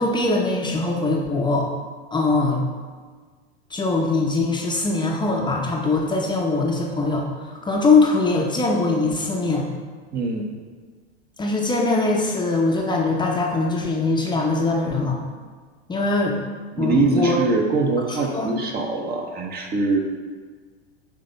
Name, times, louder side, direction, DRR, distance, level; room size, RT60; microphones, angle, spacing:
voice 1, 0.0-1.7 2.1-2.6 3.7-9.7 11.4-15.2 15.9-16.4 16.8-17.4 18.1-18.6, left 3 dB, 15° left, -1 dB, 0.8 m, -22 dB
voice 2, 10.1-10.5 16.7-20.0, right 3 dB, 30° right, 2 dB, 1.1 m, -23 dB
8.5 x 3.4 x 5.2 m, 1.5 s
hypercardioid pair, 110°, 33 cm